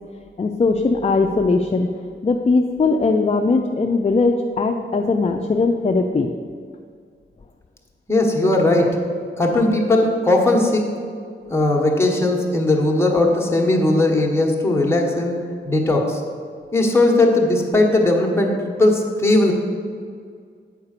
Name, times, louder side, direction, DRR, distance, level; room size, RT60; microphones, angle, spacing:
voice 1, 0.4-1.9 2.2-6.3, left 3 dB, 30° left, 4 dB, 0.5 m, -19 dB
voice 2, 8.1-9.0 9.4-10.8 11.5-15.4 15.6-16.2 16.7-19.5, left 2 dB, 10° left, 0 dB, 1.3 m, -18 dB
8.4 x 4.8 x 6.6 m, 2.1 s
wide cardioid pair, 100°, 20 cm